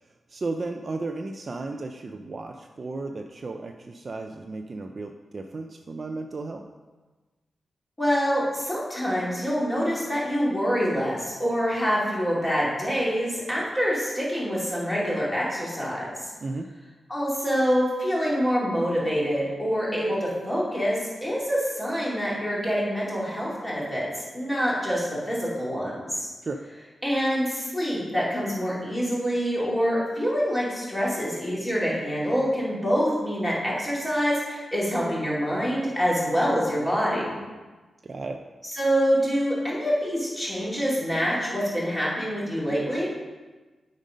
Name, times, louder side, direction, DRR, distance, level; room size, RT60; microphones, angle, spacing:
voice 1, 0.3-6.7 16.4-16.7 26.4-26.7 38.0-38.4, right 3 dB, 35° right, 5 dB, 0.4 m, -34 dB
voice 2, 8.0-16.1 17.1-26.3 27.0-37.4 38.7-43.1, equal, 10° left, -7 dB, 2.7 m, -26 dB
11.5 x 5.2 x 5.2 m, 1.3 s
wide cardioid pair, 170°, 0 cm